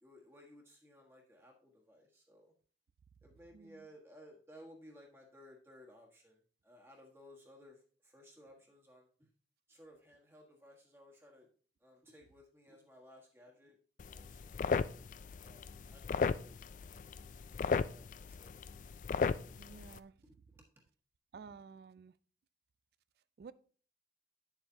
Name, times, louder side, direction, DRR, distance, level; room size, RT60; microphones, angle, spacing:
voice 1, 0.0-2.5 3.2-9.3 9.7-11.5 11.8-13.7 14.0-14.7 15.4-16.6 17.1-18.6 20.2-20.6, equal, 15° right, 1.3 m, -59 dB
voice 2, 3.5-3.9 19.6-20.1 21.3-22.1 23.4-23.5, right 5 dB, 60° right, 0.3 m, -52 dB
sound 1, 14.0-20.0, left 5 dB, 45° left, 0.3 m, -36 dB
9.5 x 7.1 x 2.7 m
head